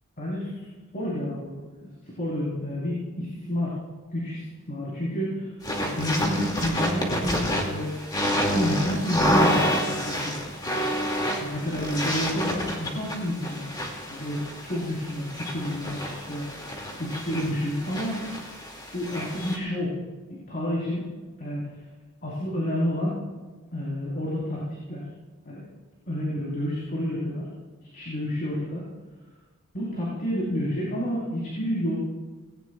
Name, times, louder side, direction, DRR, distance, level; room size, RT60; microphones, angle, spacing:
voice 1, 0.2-0.7 0.9-1.9 2.2-3.7 4.1-7.9 8.3-10.3 11.4-13.7 14.1-16.5 17.0-18.2 18.9-20.0 20.3-21.1 21.4-21.6 22.2-23.2 23.7-25.1 25.4-25.6 26.1-27.5 27.8-28.9 29.7-32.0, equal, 45° left, -7 dB, 4.1 m, -30 dB
sound 1, 5.6-19.6, equal, 20° left, 2.3 m, -28 dB
19.0 x 18.0 x 2.4 m, 1.3 s
head